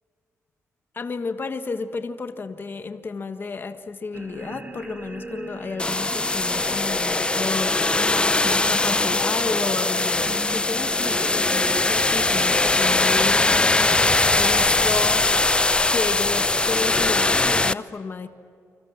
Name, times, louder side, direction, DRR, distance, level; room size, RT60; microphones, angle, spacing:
voice 1, 0.9-7.9 8.4-14.0 14.3-15.3 15.9-18.3, left 4 dB, 40° left, 8 dB, 1.5 m, -32 dB
sound 1, 4.1-16.8, right 2 dB, 30° right, 2.2 m, -39 dB
sound 2, 5.8-17.7, left 2 dB, 20° left, 0.6 m, -21 dB
29.0 x 26.0 x 7.5 m, 2.4 s
cardioid pair, 100°, 6 cm